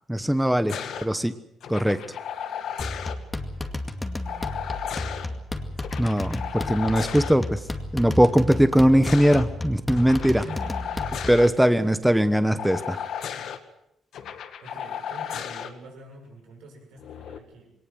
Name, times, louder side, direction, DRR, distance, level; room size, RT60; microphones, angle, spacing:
voice 1, 0.1-0.7 1.0-1.3 1.7-2.0 6.0-7.6 7.9-10.4 11.3-13.0, equal, 5° right, 11 dB, 1.1 m, -20 dB
sound 1, 0.7-1.1 1.6-3.2 4.2-5.3 5.8-7.3 8.6-9.4 10.0-11.5 12.6-13.6 14.1-15.7 17.0-17.4, left 8 dB, 70° left, 1.9 m, -34 dB
sound 2, 2.8-11.5, left 2 dB, 15° left, 2.2 m, -33 dB
voice 2, 4.2-5.4 10.3-11.2 11.5-11.9 14.6-17.7, right 2 dB, 85° right, 2 dB, 7.2 m, -47 dB
21.5 x 18.5 x 7.9 m, 0.80 s
cardioid pair, 90°, 0 cm